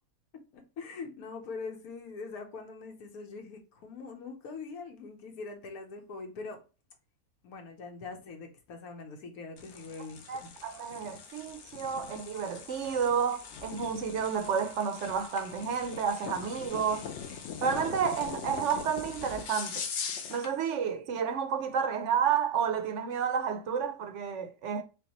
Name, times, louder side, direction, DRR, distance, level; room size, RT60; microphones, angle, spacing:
voice 1, 0.5-6.6 7.4-10.5, left 4 dB, 85° left, 1.3 m, -43 dB
sound 1, 9.6-20.5, left 6 dB, 65° left, 0.8 m, -41 dB
voice 2, 10.3-17.1 17.6-19.9 20.3-24.8, right 7 dB, 65° right, 0.8 m, -31 dB
5.2 x 2.3 x 2.9 m
omnidirectional pair, 1.5 m